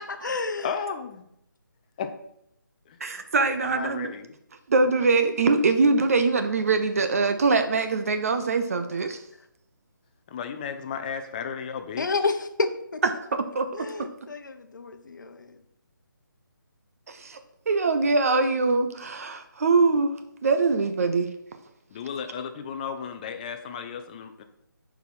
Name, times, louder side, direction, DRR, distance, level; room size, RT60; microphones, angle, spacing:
voice 1, 0.1-0.7 12.0-13.0 13.7-15.6, left 3 dB, 60° left, 8 dB, 0.9 m, -30 dB
voice 2, 0.6-1.3 2.0-2.1 2.9-4.3 10.3-12.1 21.9-24.4, left 6 dB, 25° left, 7 dB, 0.5 m, -34 dB
voice 3, 3.0-4.1 4.7-9.2 13.3-14.1 17.1-17.4 17.7-20.1 20.4-21.4, right 4 dB, 45° right, 8 dB, 0.6 m, -23 dB
6.8 x 4.8 x 6.0 m, 0.78 s
figure-of-eight pair, 150°, 11 cm